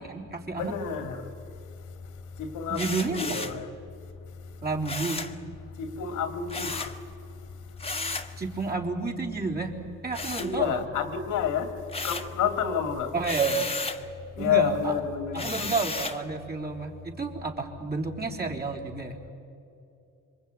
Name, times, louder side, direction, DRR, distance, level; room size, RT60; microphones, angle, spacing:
voice 1, 0.0-0.7 2.7-3.4 4.6-5.2 8.4-9.8 10.0-10.8 13.1-13.7 14.4-14.9 15.3-19.3, right 4 dB, 30° right, 3.9 m, -30 dB
voice 2, 0.6-1.3 2.4-3.7 5.8-6.9 10.4-11.7 12.0-13.1 14.4-15.5, left 7 dB, 85° left, 2.5 m, -29 dB
sound 1, 2.7-3.6 4.8-5.4 6.5-7.0 7.8-8.3 10.1-11.0 11.4-12.4 13.2-14.0 15.3-16.2, left 3 dB, 20° left, 1.7 m, -34 dB
27.0 x 23.5 x 9.3 m
cardioid pair, 90°, 30 cm